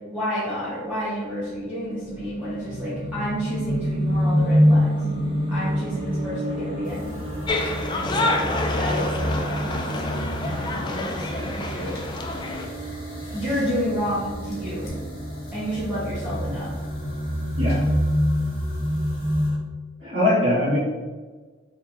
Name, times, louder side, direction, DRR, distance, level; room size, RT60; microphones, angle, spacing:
voice 1, 0.1-5.0 5.5-7.1 7.9-12.3 13.3-14.9 15.5-16.7, equal, 10° right, -13 dB, 1.3 m, -30 dB
sound 1, 1.5-19.6, equal, 25° right, 0.8 m, -26 dB
sound 2, 6.8-19.5, equal, 70° left, 1.2 m, -43 dB
sound 3, 7.5-12.7, left 2 dB, 20° left, 0.3 m, -28 dB
voice 2, 17.6-17.9 20.0-20.8, left 1 dB, 70° right, -6 dB, 1.4 m, -21 dB
4.4 x 3.0 x 2.7 m, 1.4 s
head